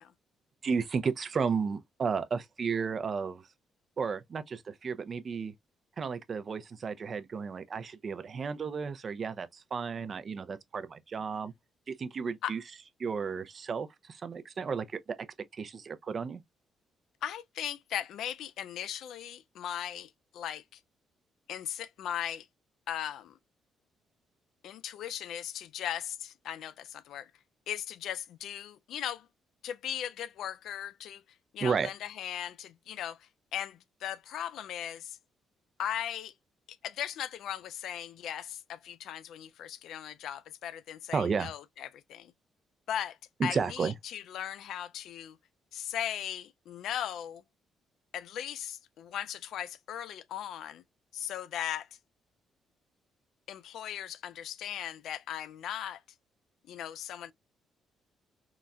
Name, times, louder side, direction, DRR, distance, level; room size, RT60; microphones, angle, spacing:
voice 1, 0.6-3.4 4.0-5.5 6.0-11.5 11.9-12.6 13.0-15.2 15.5-16.4 31.6-31.9 41.1-41.5 43.4-43.9, right 5 dB, 45° right, 0.4 m, -33 dB
voice 2, 17.2-20.8 21.5-22.5 22.9-23.4 24.6-27.3 27.7-29.3 29.6-31.2 31.5-35.2 35.8-36.3 36.8-42.3 42.9-45.4 45.7-47.4 48.1-50.8 51.1-51.9 53.5-56.0 56.7-57.3, left 10 dB, 75° left, 0.3 m, -38 dB
3.8 x 2.1 x 2.2 m
cardioid pair, 90°, 0 cm